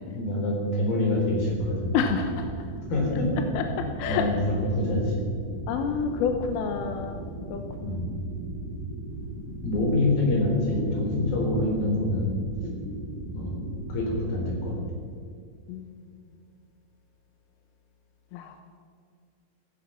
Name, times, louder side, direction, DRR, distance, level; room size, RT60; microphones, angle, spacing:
voice 1, 0.1-2.0 2.9-3.5 4.1-5.1 7.8-8.2 9.6-12.3 13.3-13.6 13.9-14.8, left 1 dB, 55° left, -1 dB, 5.7 m, -26 dB
sound 1, 1.3-14.9, right 2 dB, 55° right, 2.9 m, -37 dB
voice 2, 1.9-2.5 3.5-3.6 4.0-4.4 5.7-8.0 11.2-11.3 12.6-13.0 15.7-15.9 18.3-18.6, left 6 dB, 75° left, 6 dB, 2.5 m, -29 dB
16.5 x 15.0 x 5.7 m, 2.2 s
omnidirectional pair, 5.1 m